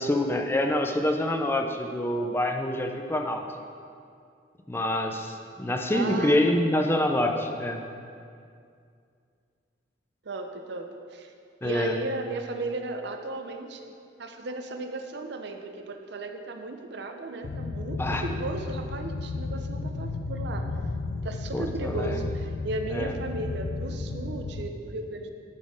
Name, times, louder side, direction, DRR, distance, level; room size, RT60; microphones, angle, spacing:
voice 1, 0.0-3.4 4.7-7.8 11.6-12.0 18.0-18.2 21.5-22.2 22.9-23.1, left 1 dB, 15° left, 3 dB, 0.5 m, -26 dB
voice 2, 5.9-6.6 10.2-11.3 11.6-20.7 21.1-25.3, right 2 dB, 65° right, 5 dB, 0.6 m, -35 dB
sound 1, 17.4-24.7, left 3 dB, 90° left, 0.5 m, -33 dB
11.5 x 4.2 x 4.8 m, 2.3 s
head